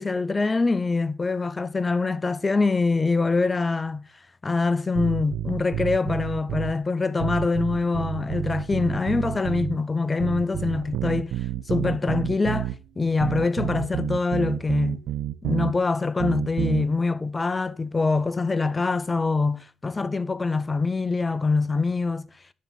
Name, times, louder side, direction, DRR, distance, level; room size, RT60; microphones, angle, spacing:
voice 1, 0.0-4.0 4.4-11.3 11.7-15.0 15.4-22.3, left 3 dB, 25° left, 0.6 m, -24 dB
sound 1, 4.9-6.8 7.2-9.8 10.2-12.8 13.2-15.7 16.2-16.9, right 11 dB, 80° right, 0.5 m, -29 dB
10.5 x 4.1 x 7.5 m
cardioid pair, 90°, 0 cm